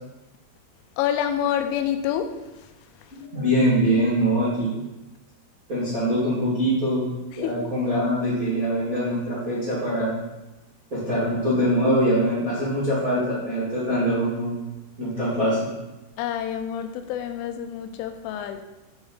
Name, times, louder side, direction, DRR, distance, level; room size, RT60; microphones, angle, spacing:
voice 1, 1.0-2.3 7.3-7.5 16.2-18.6, left 10 dB, 85° left, 8 dB, 3.1 m, -27 dB
voice 2, 3.1-4.8 5.7-7.0 7.3-10.1 10.9-14.6 15.0-15.6, equal, 30° right, -10 dB, 1.6 m, -23 dB
8.3 x 4.9 x 5.6 m, 1.0 s
omnidirectional pair, 5.6 m